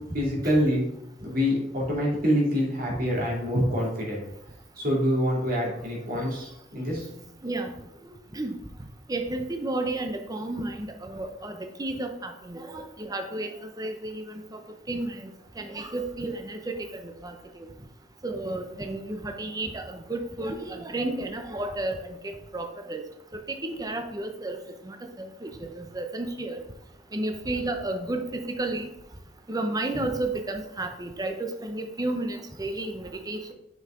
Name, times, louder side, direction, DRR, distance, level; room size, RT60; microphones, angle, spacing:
voice 1, 0.1-0.8 1.2-4.2 4.8-7.1, equal, 55° right, -3 dB, 2.5 m, -26 dB
voice 2, 9.1-11.5 11.8-13.5 13.8-14.6 14.9-15.3 15.6-16.7 17.0-17.7 18.2-23.0 23.5-24.6 24.8-26.6 27.1-28.9 29.5-33.5, right 2 dB, 20° right, 6 dB, 0.7 m, -32 dB
6.3 x 5.6 x 3.8 m, 0.82 s
head